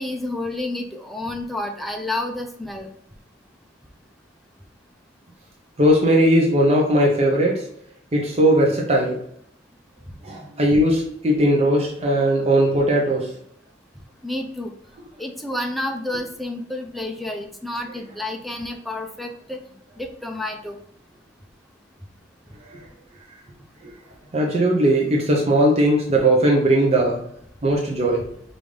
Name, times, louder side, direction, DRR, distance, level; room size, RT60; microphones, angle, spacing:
voice 1, 0.0-2.9 14.2-14.7 15.2-19.6 20.0-20.8, left 1 dB, ahead, 2 dB, 0.5 m, -30 dB
voice 2, 5.8-7.6 8.1-9.2 10.2-13.3 22.7-22.8 23.8-23.9 24.3-27.2 27.6-28.2, right 1 dB, 35° right, -1 dB, 0.7 m, -18 dB
5.1 x 2.6 x 3.2 m, 0.70 s
head